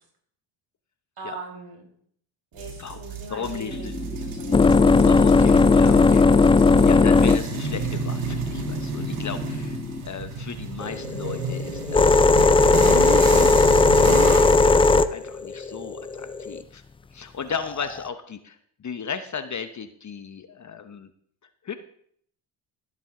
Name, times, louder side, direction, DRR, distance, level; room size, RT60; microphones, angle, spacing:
voice 1, 1.2-1.9 2.5-4.8, right 2 dB, 50° right, 0 dB, 5.2 m, -40 dB
sound 1, 2.6-14.7, right 4 dB, 90° right, 2.2 m, -32 dB
voice 2, 3.3-4.0 5.1-6.2 6.8-12.9 14.6-16.8 17.1-21.1 21.6-21.8, left 6 dB, 35° left, 10 dB, 0.9 m, -35 dB
sound 2, 3.7-10.0 10.8-16.6 17.6-18.1, left 3 dB, 15° left, 0.3 m, -18 dB
15.0 x 7.7 x 3.7 m, 0.64 s
supercardioid pair, 70°, 49 cm